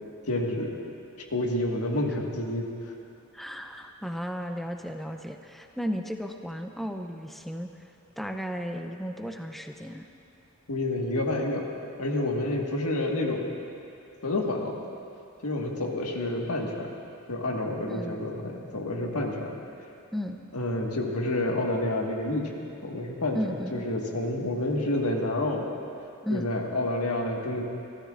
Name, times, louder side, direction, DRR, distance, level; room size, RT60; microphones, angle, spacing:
voice 1, 0.3-0.8 1.3-2.7 10.7-11.7 12.0-13.6 14.2-14.7 15.4-16.9 17.3-19.6 20.5-22.5 22.8-23.4 23.7-25.7 26.3-27.6, left 1 dB, 90° left, 0 dB, 1.6 m, -29 dB
voice 2, 3.3-10.0 17.9-18.2 20.1-20.4 23.3-23.8 26.2-26.5, equal, ahead, 4 dB, 0.5 m, -34 dB
27.5 x 13.5 x 2.5 m, 2.7 s
head